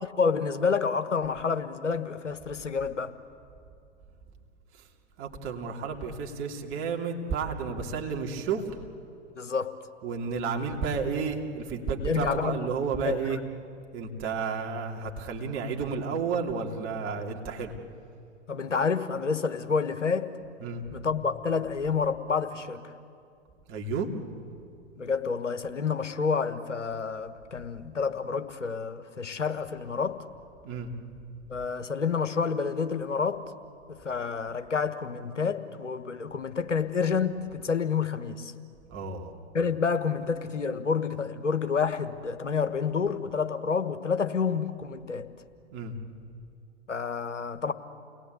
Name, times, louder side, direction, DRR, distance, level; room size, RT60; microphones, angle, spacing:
voice 1, 0.0-3.1 9.3-9.8 12.0-12.6 13.0-13.4 18.5-20.3 20.9-22.9 25.0-30.2 31.5-33.5 33.9-38.5 39.5-45.3 46.9-47.7, left 5 dB, 85° left, 1.4 m, -29 dB
voice 2, 5.2-8.7 10.0-13.4 13.9-17.7 20.6-20.8 23.7-24.1 30.6-30.9 38.9-39.3 45.7-46.0, right 5 dB, 35° right, 3.1 m, -31 dB
29.5 x 20.0 x 8.4 m
figure-of-eight pair, 100°, 36 cm